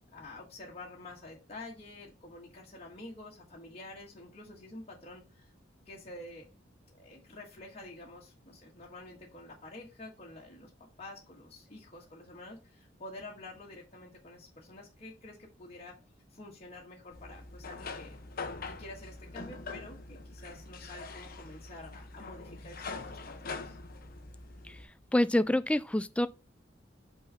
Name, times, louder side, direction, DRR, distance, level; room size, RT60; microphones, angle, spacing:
voice 1, 0.1-5.5 5.8-6.5 6.9-10.7 11.0-16.0 16.3-18.2 18.6-23.8, left 2 dB, 35° left, 1.6 m, -48 dB
sound 1, 17.1-24.9, left 3 dB, 50° left, 0.9 m, -43 dB
voice 2, 25.1-26.3, left 1 dB, 5° left, 0.3 m, -26 dB
5.5 x 4.0 x 5.6 m
head